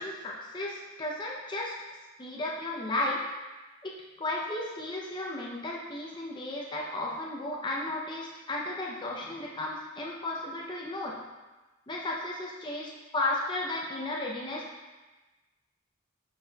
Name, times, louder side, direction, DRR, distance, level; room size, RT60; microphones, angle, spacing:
voice 1, 0.0-1.8 2.2-3.3 3.8-11.2 11.9-14.7, left 2 dB, 20° left, -3 dB, 0.6 m, -34 dB
10.5 x 4.1 x 2.3 m, 1.2 s
head